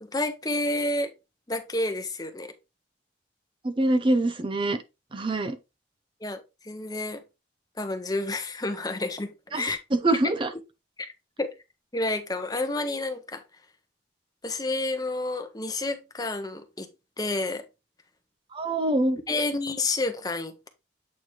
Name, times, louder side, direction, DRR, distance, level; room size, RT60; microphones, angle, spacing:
voice 1, 0.0-1.1 1.5-2.5 6.2-7.2 7.8-9.8 11.0-11.1 11.4-11.5 11.9-13.4 14.4-16.9 17.2-17.6 19.3-20.7, left 2 dB, 20° left, 0.9 m, -30 dB
voice 2, 3.6-4.8 5.1-5.6 9.5-9.6 9.9-10.5 18.5-19.2, right 2 dB, 25° right, 0.6 m, -24 dB
8.4 x 3.1 x 4.3 m
head